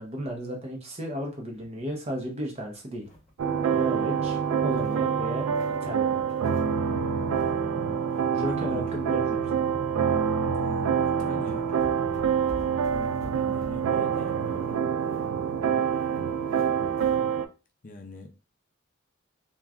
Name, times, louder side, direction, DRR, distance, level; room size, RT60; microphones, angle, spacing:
voice 1, 0.0-3.1 3.7-5.5 5.8-6.2 8.3-9.4, equal, 30° right, 0.7 m, -34 dB
sound 1, 1.5-2.0 2.4-2.5 2.8-4.0 4.5-5.9 6.3-6.9 7.1-7.6 7.9-9.5 9.9-10.1 10.8-10.9 11.1-17.2, equal, 5° left, 1.5 m, -49 dB
sound 2, 3.4-17.5, right 7 dB, 90° right, 0.3 m, -26 dB
voice 2, 8.3-9.3 10.6-11.7 12.9-14.8 17.8-18.3, left 1 dB, 40° left, 0.5 m, -42 dB
3.0 x 2.2 x 2.4 m
head